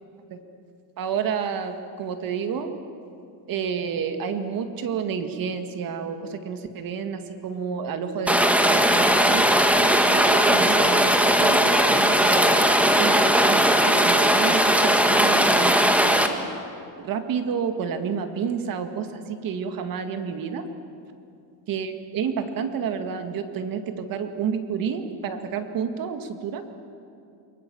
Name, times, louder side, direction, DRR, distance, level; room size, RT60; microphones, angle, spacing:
voice 1, 1.0-2.7 3.5-9.6 10.1-16.4 17.0-20.7 21.7-26.6, right 6 dB, 50° right, 7 dB, 2.1 m, -30 dB
Rain, 8.3-16.3, equal, 5° right, 1.4 m, -18 dB
29.0 x 22.0 x 7.1 m, 2.5 s
cardioid pair, 145°, 45 cm